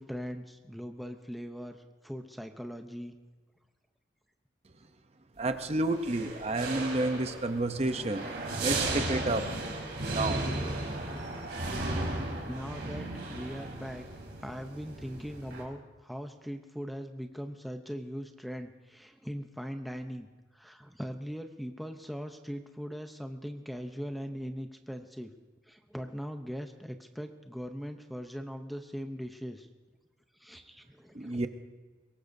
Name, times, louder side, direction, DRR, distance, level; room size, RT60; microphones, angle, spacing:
voice 1, 0.0-3.2 12.5-14.0 14.4-20.3 20.5-25.3 25.7-29.7 30.4-31.4, equal, ahead, 5 dB, 0.6 m, -40 dB
voice 2, 5.4-8.3 8.6-9.5 10.0-10.4 31.1-31.5, right 2 dB, 35° right, 8 dB, 0.7 m, -30 dB
sound 1, 5.9-15.6, right 2 dB, 55° right, 3.1 m, -35 dB
22.5 x 18.5 x 2.7 m, 1.3 s
head